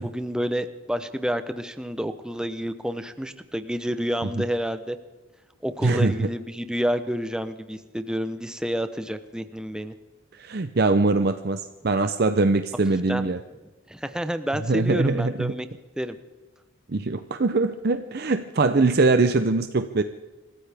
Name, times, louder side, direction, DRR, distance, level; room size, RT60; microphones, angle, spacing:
voice 1, 0.0-5.0 5.6-9.9 13.1-13.3 13.9-15.7 16.0-16.2, equal, 5° right, 10 dB, 0.7 m, -29 dB
voice 2, 10.3-13.4 14.7-15.5 16.9-20.0, right 3 dB, 50° right, 9 dB, 0.6 m, -22 dB
26.5 x 14.5 x 3.5 m, 1.2 s
head